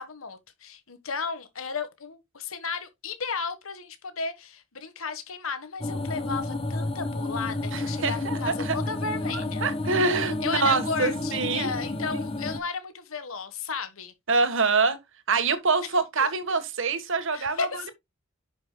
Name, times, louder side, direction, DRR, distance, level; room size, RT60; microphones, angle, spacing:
voice 1, 0.0-9.7 10.4-14.1 15.8-15.9 16.2-16.3 17.3-17.9, left 5 dB, 75° left, 1.3 m, -34 dB
sound 1, 5.8-12.6, left 2 dB, 30° left, 1.1 m, -31 dB
voice 2, 7.7-8.7 9.6-11.7 14.3-15.0 15.3-17.7, right 4 dB, 65° right, 1.3 m, -25 dB
10.5 x 6.0 x 2.2 m
head